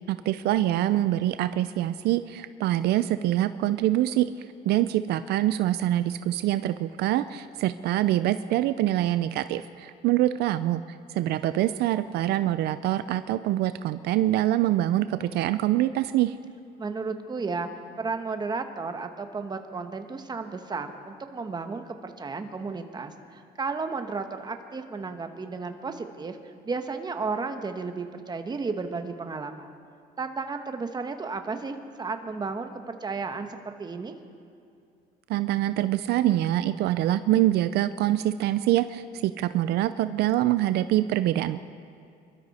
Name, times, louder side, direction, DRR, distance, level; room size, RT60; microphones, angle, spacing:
voice 1, 0.0-4.3 4.7-10.8 11.1-16.3 35.3-41.6, right 14 dB, 75° right, 12 dB, 0.5 m, -25 dB
voice 2, 16.8-17.7 18.0-26.4 26.6-29.7 30.2-34.2, right 4 dB, 25° right, 6 dB, 1.2 m, -33 dB
25.5 x 13.0 x 4.2 m, 2.4 s
cardioid pair, 110°, 17 cm